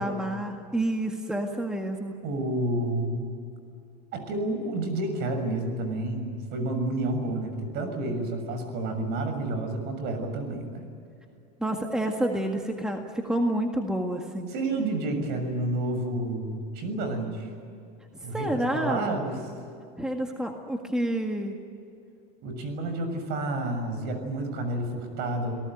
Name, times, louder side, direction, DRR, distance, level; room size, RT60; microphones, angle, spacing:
voice 1, 0.0-2.2 11.6-14.5 18.3-19.2 20.0-21.6, right 1 dB, 5° right, 3 dB, 1.9 m, -29 dB
voice 2, 2.2-3.3 4.1-10.9 14.5-17.5 18.2-19.4 22.4-25.5, right 2 dB, 55° right, 7 dB, 6.6 m, -30 dB
28.5 x 18.5 x 9.2 m, 2.5 s
supercardioid pair, 140°, 21 cm